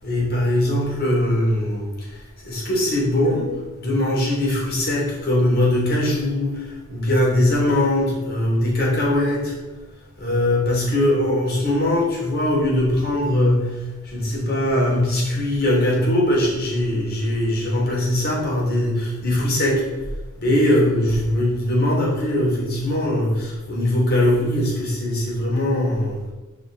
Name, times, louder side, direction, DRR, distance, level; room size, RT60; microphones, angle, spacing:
voice 1, 0.0-9.6 10.2-19.9 20.4-26.3, left 1 dB, 50° left, -3 dB, 3.2 m, -21 dB
11.5 x 5.1 x 4.1 m, 1.2 s
head